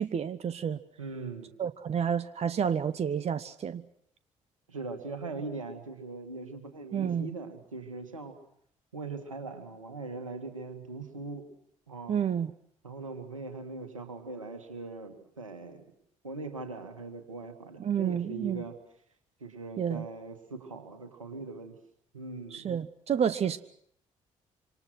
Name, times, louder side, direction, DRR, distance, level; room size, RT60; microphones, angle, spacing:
voice 1, 0.0-0.8 1.6-3.8 6.9-7.3 12.1-12.5 17.8-18.6 19.8-20.1 22.5-23.6, right 8 dB, 40° right, 14 dB, 1.0 m, -30 dB
voice 2, 1.0-1.5 4.7-8.4 8.9-11.5 11.9-12.1 12.8-15.9 16.2-18.8 19.4-21.8 22.1-22.7, right 3 dB, 85° right, 7 dB, 2.2 m, -40 dB
26.0 x 26.0 x 6.2 m, 0.68 s
figure-of-eight pair, 45°, 16 cm